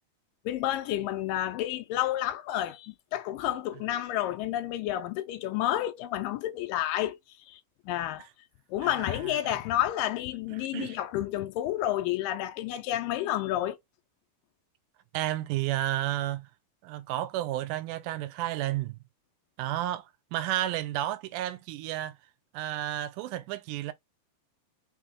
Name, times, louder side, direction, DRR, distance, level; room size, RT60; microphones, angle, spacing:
voice 1, 0.5-7.2 7.5-7.6 7.9-8.3 8.7-13.8, left 13 dB, 80° left, 2.2 m, -30 dB
voice 2, 8.8-9.6 10.7-11.0 15.1-16.5 16.8-19.0 19.6-20.1 20.3-22.1 22.5-23.9, right 14 dB, 80° right, 1.9 m, -32 dB
6.0 x 2.2 x 3.5 m
omnidirectional pair, 4.1 m